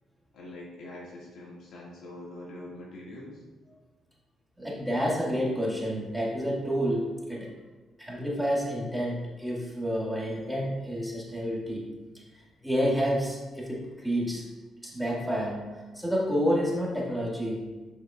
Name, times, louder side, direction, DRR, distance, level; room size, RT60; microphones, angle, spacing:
voice 1, 0.3-3.4, left 1 dB, 75° left, -4 dB, 1.9 m, -44 dB
voice 2, 4.6-7.5 8.0-11.9 12.3-14.5 14.8-17.6, equal, ahead, -4 dB, 1.8 m, -29 dB
7.6 x 6.1 x 2.4 m, 1.2 s
cardioid pair, 90°, 0 cm